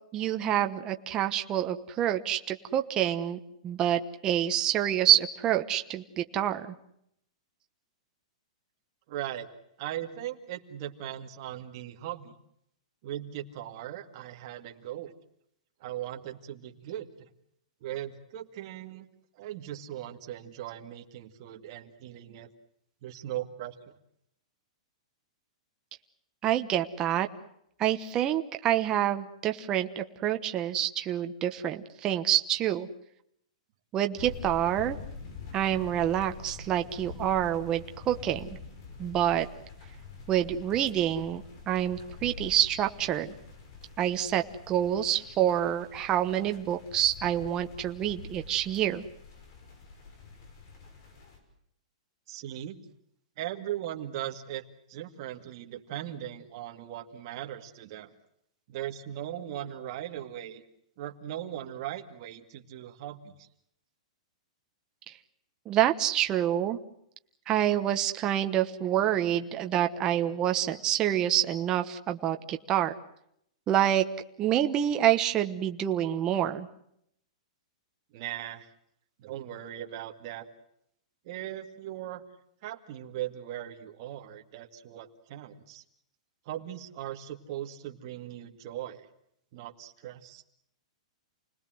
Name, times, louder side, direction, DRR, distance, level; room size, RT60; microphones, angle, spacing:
voice 1, 0.1-6.7 26.4-27.3 27.8-32.9 33.9-35.0 35.5-38.5 39.0-39.5 40.3-43.3 44.0-49.0 65.1-65.2 65.7-66.8 67.5-72.9 73.7-74.1 74.4-76.7, right 11 dB, 20° right, 6 dB, 1.1 m, -27 dB
voice 2, 9.1-9.5 9.8-12.4 13.0-15.1 15.8-17.3 17.8-19.1 19.3-22.5 23.0-23.7 52.3-52.8 53.4-54.6 54.9-58.1 58.7-60.6 61.0-63.5 78.1-78.7 79.2-80.5 81.2-82.2 82.6-85.8 86.5-89.1 89.5-90.4, right 12 dB, 40° right, 4 dB, 2.2 m, -39 dB
sound 1, 34.2-51.4, left 4 dB, 45° left, 6.0 m, -46 dB
29.0 x 19.5 x 7.8 m, 0.74 s
hypercardioid pair, 165°, 4 cm